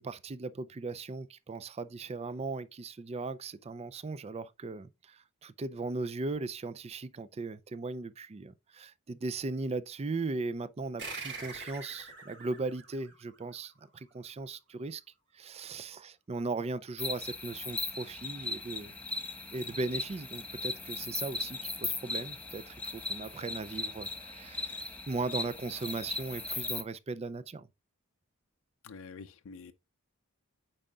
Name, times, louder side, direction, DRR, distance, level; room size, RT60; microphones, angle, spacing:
voice 1, 0.0-15.0 15.3-18.9 19.5-27.7, right 3 dB, 30° right, 0.4 m, -38 dB
sound 1, 11.0-14.0, right 4 dB, 55° right, 2.7 m, -44 dB
sound 2, 17.0-26.8, left 3 dB, 5° left, 1.3 m, -38 dB
voice 2, 28.8-29.7, left 5 dB, 65° left, 0.5 m, -47 dB
8.9 x 5.5 x 2.4 m
head